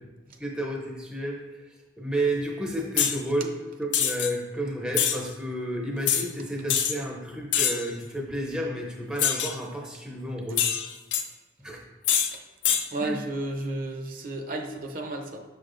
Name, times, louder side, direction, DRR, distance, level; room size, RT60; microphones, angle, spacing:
voice 1, 0.4-1.4 2.0-10.7 11.6-11.8 13.0-13.2, right 1 dB, 5° right, -1 dB, 0.6 m, -31 dB
sound 1, 3.0-3.2 3.9-4.3 4.9-5.2 6.1-6.3 6.7-6.9 7.5-7.9 9.2-9.6 10.6-11.2 12.0-12.3 12.6-12.8, left 9 dB, 70° left, 0.5 m, -24 dB
voice 2, 12.9-15.4, right 2 dB, 45° right, 3 dB, 0.6 m, -32 dB
6.6 x 6.6 x 2.5 m, 1.2 s
head